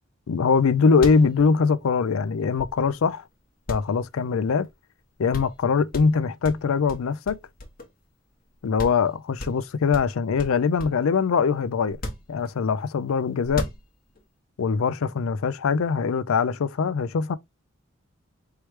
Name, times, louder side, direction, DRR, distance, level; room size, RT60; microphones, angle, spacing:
voice 1, 0.3-3.2 3.7-4.7 5.2-7.4 8.6-12.0 12.3-13.7 14.6-17.4, left 5 dB, 85° left, 0.4 m, -22 dB
sound 1, 0.6-0.7 0.9-3.1 3.7-4.7 5.0-5.1 5.3-5.6 5.9-8.1 8.4-8.5 8.8-9.1 9.4-11.1 11.9-12.8 13.4-14.2, left 1 dB, 45° left, 1.1 m, -36 dB
4.6 x 3.2 x 3.1 m
head